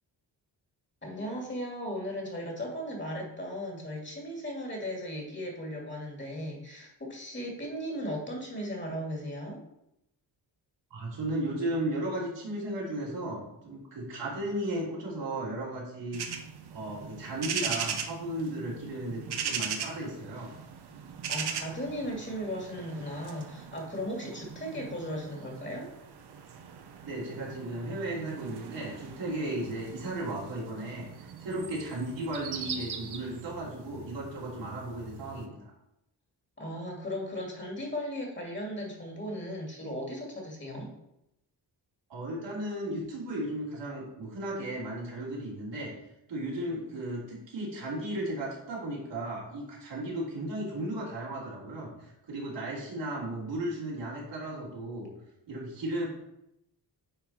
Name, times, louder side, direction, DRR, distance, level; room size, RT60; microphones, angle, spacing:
voice 1, 1.0-9.6 21.3-25.9 36.6-40.9, equal, 25° left, -1 dB, 2.3 m, -36 dB
voice 2, 10.9-16.2 16.7-20.5 27.0-35.7 42.1-45.9 46.3-55.1 55.5-56.1, right 1 dB, 85° right, -5 dB, 2.9 m, -35 dB
sound 1, 16.1-35.5, right 6 dB, 65° right, 0.9 m, -40 dB
9.3 x 4.4 x 4.3 m, 0.83 s
wide cardioid pair, 120°, 42 cm